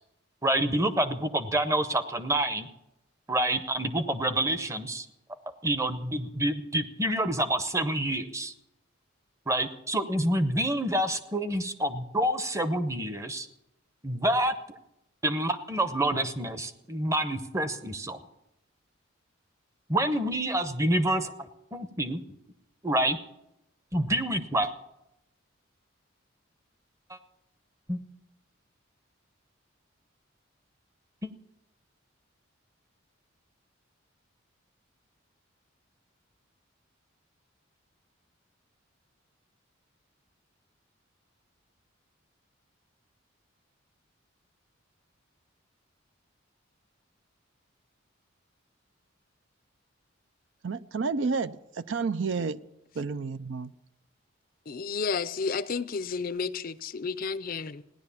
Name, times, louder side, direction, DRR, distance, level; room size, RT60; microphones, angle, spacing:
voice 1, 0.4-2.7 3.3-5.1 5.6-8.5 9.5-13.5 14.0-14.5 15.2-18.2 19.9-22.2 22.8-23.2 23.9-24.7 27.1-27.2 27.9-28.0 31.2-31.3, right 1 dB, 15° right, 0.8 m, -27 dB
voice 2, 50.6-52.6 53.0-53.7, right 4 dB, 65° right, 0.5 m, -30 dB
voice 3, 54.7-57.8, left 5 dB, 45° left, 0.5 m, -31 dB
16.5 x 10.5 x 7.0 m
head